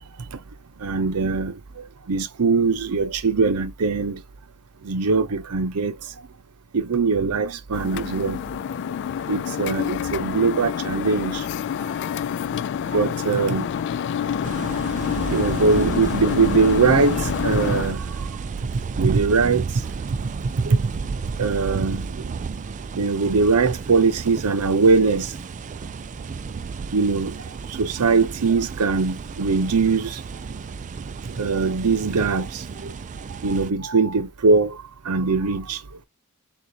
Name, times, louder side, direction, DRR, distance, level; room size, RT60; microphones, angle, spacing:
voice 1, 0.8-4.2 4.8-5.9 6.7-8.4 9.3-11.4 12.9-13.7 15.3-18.1 19.0-19.8 20.6-20.8 21.4-22.1 23.0-25.3 26.9-27.4 27.7-30.2 31.4-32.9 33.4-34.8 35.1-35.8, right 4 dB, 90° right, 0.7 m, -21 dB
sound 1, 7.7-17.9, left 8 dB, 55° left, 0.3 m, -27 dB
sound 2, 14.4-33.7, right 5 dB, 35° right, 0.3 m, -32 dB
6.5 x 2.4 x 2.8 m
head